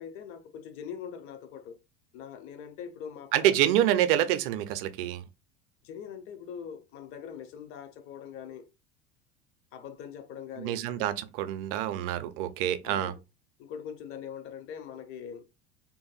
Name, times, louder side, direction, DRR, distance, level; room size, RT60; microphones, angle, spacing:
voice 1, 0.0-1.8 2.1-3.6 5.8-8.7 9.7-10.8 12.8-13.2 13.6-15.5, left 7 dB, 40° left, 0.5 m, -42 dB
voice 2, 3.3-5.2 10.6-13.1, right 12 dB, 55° right, 0.5 m, -27 dB
2.6 x 2.5 x 2.3 m
figure-of-eight pair, 75°, 34 cm